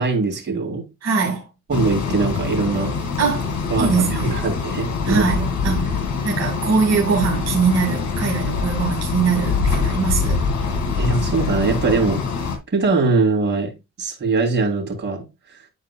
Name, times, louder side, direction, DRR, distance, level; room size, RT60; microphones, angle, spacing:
voice 1, 0.0-0.8 1.7-2.9 3.7-5.3 10.9-12.2 12.7-13.7 14.0-15.2, right 3 dB, 35° right, 3.1 m, -21 dB
voice 2, 1.0-1.5 3.2-4.4 5.1-5.9 6.2-10.4, right 5 dB, 55° right, 2.3 m, -22 dB
sound 1, 1.7-12.6, left 5 dB, 65° left, 2.2 m, -24 dB
10.0 x 4.7 x 2.3 m
cardioid pair, 90°, 30 cm